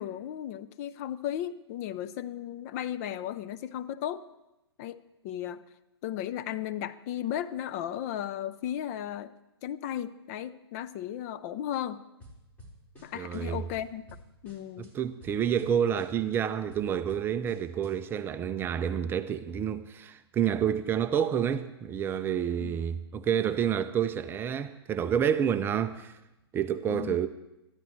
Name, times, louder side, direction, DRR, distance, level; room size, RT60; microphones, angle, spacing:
voice 1, 0.0-4.2 4.8-5.0 5.2-5.6 6.0-9.3 9.6-12.0 13.0-14.0 14.4-14.9 22.6-22.8 26.9-27.2, left 11 dB, 35° left, 0.6 m, -35 dB
sound 1, 12.2-13.4 13.7-14.9 15.2-15.7 15.9-17.9, equal, 10° left, 4.5 m, -52 dB
voice 2, 13.1-13.7 14.8-26.1 26.5-27.3, right 8 dB, 15° right, 0.5 m, -29 dB
21.5 x 13.5 x 3.2 m
hypercardioid pair, 130°, 14 cm